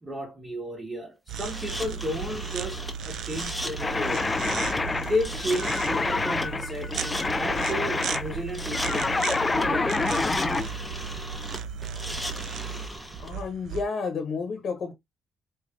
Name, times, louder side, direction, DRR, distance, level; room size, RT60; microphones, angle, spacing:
voice 1, 0.0-4.3 5.0-10.0, equal, 25° right, 1.7 m, -33 dB
sound 1, 1.3-13.8, right 6 dB, 75° right, 0.5 m, -36 dB
sound 2, 1.4-13.3, left 1 dB, ahead, 1.2 m, -38 dB
sound 3, 3.8-10.7, left 3 dB, 25° left, 0.4 m, -27 dB
voice 2, 13.2-14.9, left 4 dB, 60° left, 1.0 m, -31 dB
4.4 x 3.3 x 2.5 m
cardioid pair, 90°, 0 cm